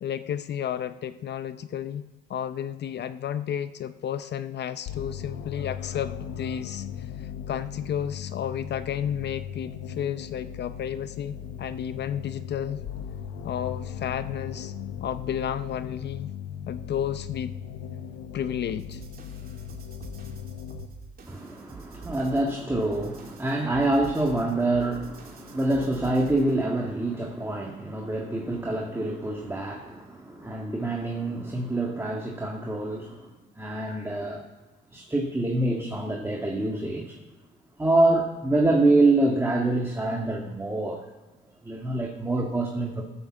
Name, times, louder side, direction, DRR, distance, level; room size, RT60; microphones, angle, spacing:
voice 1, 0.0-2.0 2.3-6.9 7.5-12.8 13.4-14.7 15.0-16.3 16.7-17.5 18.3-19.0, left 9 dB, 60° left, 12 dB, 0.6 m, -32 dB
sound 1, 4.9-20.9, left 8 dB, 90° left, 0.9 m, -38 dB
sound 2, 18.7-26.6, right 4 dB, 50° right, 2.5 m, -46 dB
voice 2, 21.3-33.3 33.6-34.4 34.9-37.2 37.8-41.1 41.6-43.0, right 2 dB, 10° right, 1 dB, 1.7 m, -26 dB
14.5 x 7.3 x 7.2 m, 1.2 s
cardioid pair, 90°, 20 cm